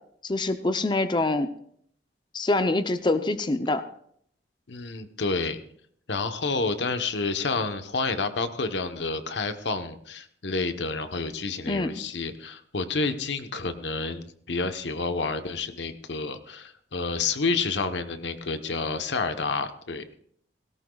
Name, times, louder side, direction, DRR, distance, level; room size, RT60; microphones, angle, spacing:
voice 1, 0.2-1.5 2.3-3.8 11.7-11.9, left 2 dB, 25° left, 9 dB, 0.6 m, -25 dB
voice 2, 4.7-5.6 6.1-20.2, left 4 dB, 90° left, 9 dB, 1.1 m, -29 dB
17.5 x 17.5 x 2.4 m, 0.64 s
head